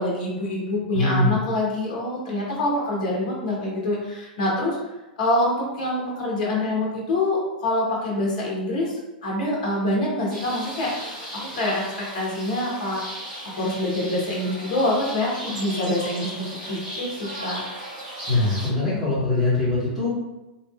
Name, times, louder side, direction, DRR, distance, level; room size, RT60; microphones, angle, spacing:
voice 1, 0.0-4.8 5.2-13.0 13.6-17.6, left 1 dB, 50° left, -3 dB, 0.9 m, -26 dB
voice 2, 0.9-1.3 18.3-20.1, left 2 dB, 5° right, -15 dB, 1.2 m, -22 dB
sound 1, 10.3-18.7, equal, 40° right, 1.2 m, -36 dB
3.2 x 2.4 x 2.3 m, 1.0 s
figure-of-eight pair, 100°, 5 cm